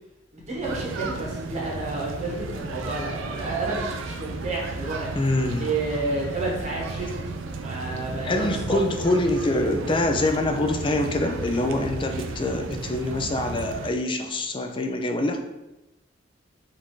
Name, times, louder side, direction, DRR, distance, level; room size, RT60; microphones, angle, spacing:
voice 1, 0.3-5.1 5.6-7.3 7.6-8.8, right 2 dB, 35° right, -4 dB, 1.0 m, -30 dB
sound 1, 0.6-13.9, right 3 dB, 90° right, 0.4 m, -34 dB
voice 2, 5.1-5.7 8.2-15.4, left 2 dB, 25° left, 4 dB, 0.4 m, -25 dB
5.2 x 2.6 x 3.6 m, 0.97 s
head